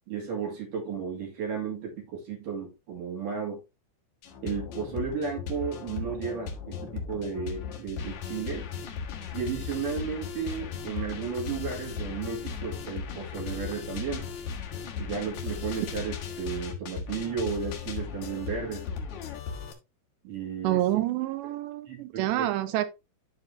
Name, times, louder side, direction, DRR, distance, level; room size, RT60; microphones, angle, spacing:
voice 1, 0.1-3.6 4.4-8.7 9.3-14.3 15.0-18.9 20.2-20.8 21.9-22.5, right 6 dB, 50° right, 3.7 m, -34 dB
sound 1, 4.2-19.7, left 6 dB, 90° left, 1.6 m, -37 dB
voice 2, 20.6-22.9, right 14 dB, 80° right, 2.7 m, -27 dB
12.0 x 4.8 x 2.8 m
omnidirectional pair, 5.6 m